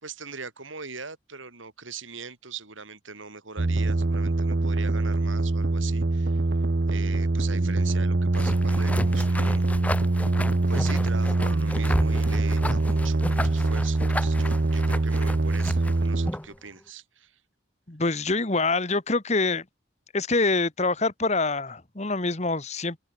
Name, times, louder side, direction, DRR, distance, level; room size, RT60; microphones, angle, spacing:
voice 1, 0.0-6.4 6.9-9.6 10.7-17.4, right 5 dB, 80° right, 4.7 m, -41 dB
sound 1, 3.6-16.3, right 2 dB, 55° right, 0.8 m, -24 dB
sound 2, 8.3-16.6, left 1 dB, 5° left, 0.9 m, -33 dB
voice 2, 17.9-19.6 20.1-23.0, left 3 dB, 35° left, 1.5 m, -25 dB
open air
head